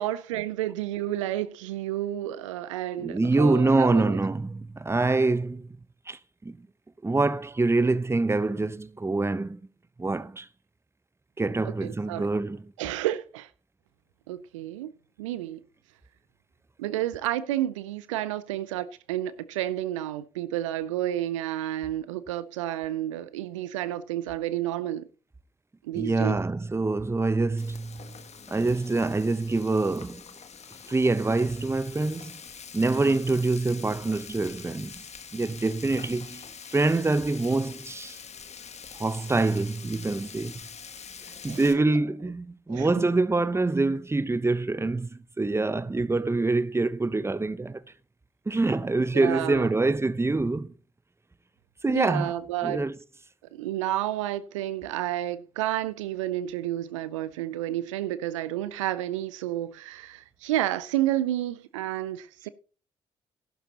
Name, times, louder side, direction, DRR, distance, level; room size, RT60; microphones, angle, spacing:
voice 1, 0.0-4.2 11.8-12.3 12.8-13.5 14.3-14.9 15.2-15.6 16.8-25.1 25.8-26.4 41.5-41.6 42.7-43.0 49.1-49.7 51.9-52.8 53.5-62.5, right 13 dB, 80° right, 0.5 m, -30 dB
voice 2, 3.0-5.7 6.1-6.6 7.0-9.6 10.0-10.5 11.4-12.6 25.9-28.2 28.5-30.2 30.9-32.4 32.7-35.0 35.3-36.4 36.7-38.2 39.0-40.6 41.2-47.8 48.5-50.7 51.8-52.3 52.6-52.9, right 3 dB, 15° right, 0.8 m, -25 dB
Frying (food), 27.6-41.7, left 6 dB, 45° left, 1.3 m, -45 dB
14.5 x 11.5 x 2.9 m
figure-of-eight pair, 40°, 16 cm